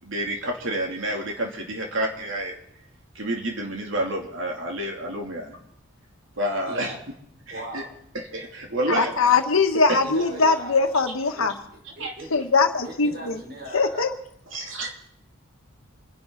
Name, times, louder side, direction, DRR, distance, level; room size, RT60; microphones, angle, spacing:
voice 1, 0.0-2.5 3.1-5.6 6.4-6.9 7.5-7.8 8.3-9.1 12.0-12.1 14.5-14.9, right 1 dB, 70° right, 1 dB, 3.0 m, -29 dB
voice 2, 6.7-7.0 7.5-7.9 9.1-9.4 10.0-11.5 12.0-12.3 12.8-14.1, right 1 dB, 50° right, 1 dB, 4.1 m, -39 dB
voice 3, 8.9-11.5 12.3-13.4 13.7-14.1, left 4 dB, 80° left, 6 dB, 1.5 m, -21 dB
27.5 x 11.0 x 4.1 m, 0.76 s
head